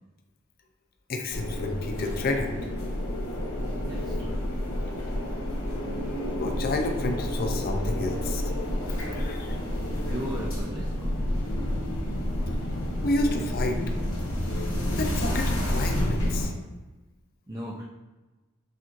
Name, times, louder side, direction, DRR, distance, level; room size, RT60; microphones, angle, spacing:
voice 1, 1.1-2.6 6.3-8.4 9.0-9.6 13.0-13.8 14.9-16.5, left 2 dB, 45° left, 4 dB, 0.5 m, -30 dB
sound 1, 1.3-16.5, left 1 dB, 75° left, 1.2 m, -29 dB
voice 2, 3.8-4.4 10.1-11.1 17.5-17.8, equal, 20° right, -4 dB, 0.5 m, -38 dB
6.2 x 3.0 x 2.5 m, 1.1 s
head